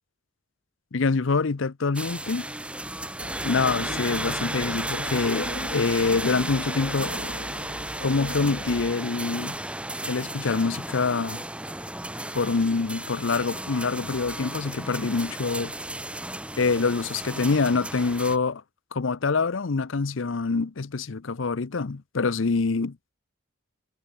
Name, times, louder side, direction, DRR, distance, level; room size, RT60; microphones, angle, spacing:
voice 1, 0.9-2.5 3.4-5.5 5.7-7.2 8.0-9.6 10.0-11.4 12.3-15.7 16.6-18.6 18.9-23.0, left 4 dB, 65° left, 0.7 m, -25 dB
sound 1, 1.9-18.4, right 1 dB, 5° right, 4.8 m, -34 dB
sound 2, 3.2-9.0, left 1 dB, 50° left, 6.9 m, -38 dB
head